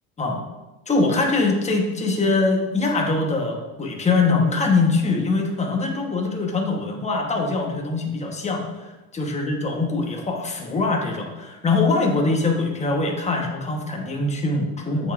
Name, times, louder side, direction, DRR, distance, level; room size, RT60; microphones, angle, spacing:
voice 1, 0.9-15.1, left 3 dB, 15° left, 1 dB, 1.2 m, -23 dB
8.1 x 6.0 x 2.5 m, 1.1 s
supercardioid pair, 115°, 46 cm